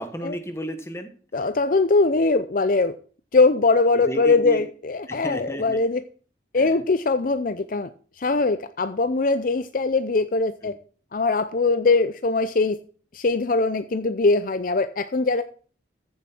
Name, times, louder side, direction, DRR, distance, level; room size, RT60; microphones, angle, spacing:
voice 1, 0.0-1.5 3.9-4.6 5.1-5.8 6.5-6.8 10.6-10.7, equal, 15° left, 8 dB, 1.3 m, -34 dB
voice 2, 1.3-3.0 3.3-6.0 6.5-7.9 8.2-10.7 11.1-12.8 13.1-15.4, left 3 dB, 45° left, 12 dB, 0.5 m, -21 dB
14.5 x 7.4 x 4.4 m, 0.42 s
head